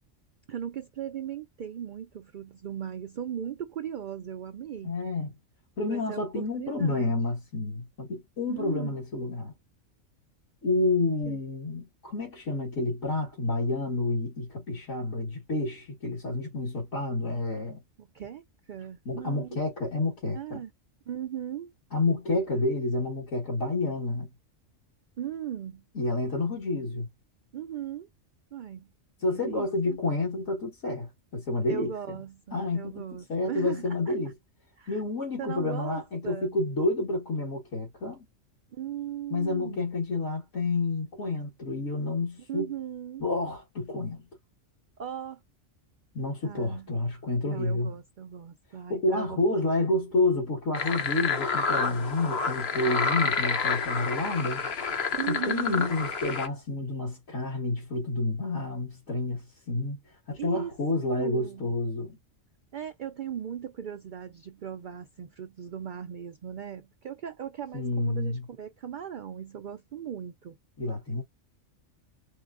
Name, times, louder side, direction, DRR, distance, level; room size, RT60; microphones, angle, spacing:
voice 1, 0.5-5.0 5.9-7.2 8.5-9.0 11.2-11.4 18.0-18.4 18.7-19.6 20.3-20.7 21.1-21.7 25.2-25.8 27.5-28.1 28.5-28.9 29.3-30.0 31.7-34.2 34.8-35.0 35.4-36.6 38.7-39.8 42.5-43.2 45.0-45.4 46.4-46.9 47.4-49.6 55.1-55.9 60.4-60.8 61.2-61.7 62.7-70.6, right 9 dB, 65° right, 0.5 m, -38 dB
voice 2, 4.8-5.3 5.8-9.5 10.6-17.8 19.1-20.6 21.9-24.3 26.0-27.1 29.2-32.2 32.5-33.0 33.3-34.3 34.9-38.2 39.3-42.7 43.2-44.2 46.1-47.9 48.9-54.7 55.3-60.0 60.3-62.2 67.7-68.4 70.8-71.2, left 2 dB, 70° left, 1.9 m, -29 dB
sound 1, 50.7-56.5, left 5 dB, 55° left, 1.1 m, -29 dB
4.6 x 3.4 x 2.5 m
omnidirectional pair, 1.3 m